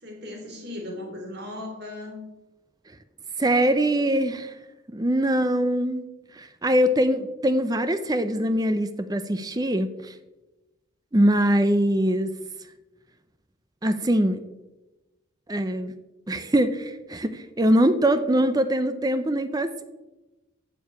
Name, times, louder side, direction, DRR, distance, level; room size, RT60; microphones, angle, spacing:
voice 1, 0.0-2.2, left 1 dB, 50° right, 2 dB, 3.1 m, -37 dB
voice 2, 3.4-4.6 4.9-6.1 6.3-10.1 11.1-12.4 13.8-14.4 15.5-15.9 16.3-19.8, right 1 dB, 20° right, 11 dB, 0.5 m, -23 dB
9.4 x 7.4 x 8.4 m, 1.1 s
head